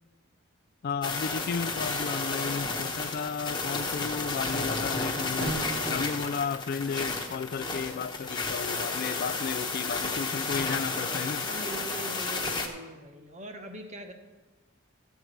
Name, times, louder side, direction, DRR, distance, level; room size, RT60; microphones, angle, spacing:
voice 1, 0.8-11.5, left 6 dB, 45° left, 0.3 m, -33 dB
sound 1, 1.0-12.7, left 3 dB, 20° left, 1.0 m, -32 dB
sound 2, 5.4-5.9, right 2 dB, 55° right, 1.7 m, -33 dB
voice 2, 10.2-14.1, right 1 dB, 35° right, 1.0 m, -43 dB
13.5 x 4.7 x 7.8 m
head